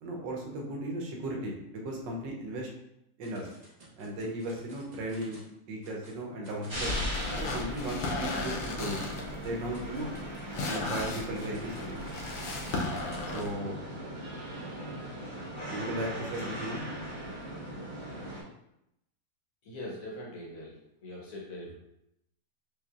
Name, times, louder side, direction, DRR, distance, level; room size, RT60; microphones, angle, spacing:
voice 1, 0.0-2.7 3.2-3.5 4.0-6.9 7.4-9.0 9.4-10.1 10.7-12.0 13.3-13.8 15.7-16.9, right 1 dB, 85° right, 0 dB, 1.4 m, -36 dB
sound 1, 3.2-5.5 5.8-6.2 6.4-13.5, right 1 dB, 45° right, 0.5 m, -55 dB
sound 2, 6.7-13.5, left 3 dB, 80° left, 1.3 m, -35 dB
sound 3, 6.7-18.4, right 1 dB, 20° right, 1.2 m, -39 dB
voice 2, 19.6-21.7, left 1 dB, 60° left, -3 dB, 1.1 m, -42 dB
5.0 x 2.5 x 2.4 m, 0.82 s
omnidirectional pair, 1.9 m